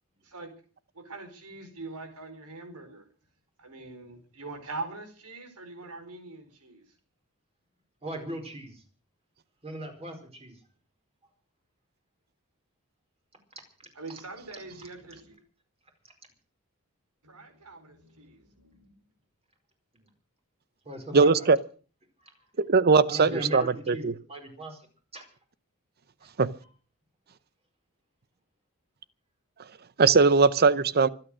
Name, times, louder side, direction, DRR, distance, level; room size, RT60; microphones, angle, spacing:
voice 1, 0.9-3.1 3.6-6.8 13.9-15.4 17.2-19.0, right 3 dB, 90° right, 4.7 m, -43 dB
voice 2, 8.0-8.8 9.6-10.5 20.8-21.5 22.2-22.3 23.1-24.8 25.1-25.3 26.2-26.3, right 1 dB, 30° right, 4.8 m, -38 dB
voice 3, 21.1-21.6 22.6-24.1 26.4-26.5 30.0-31.1, right 4 dB, 45° right, 0.8 m, -20 dB
25.0 x 8.9 x 6.3 m
head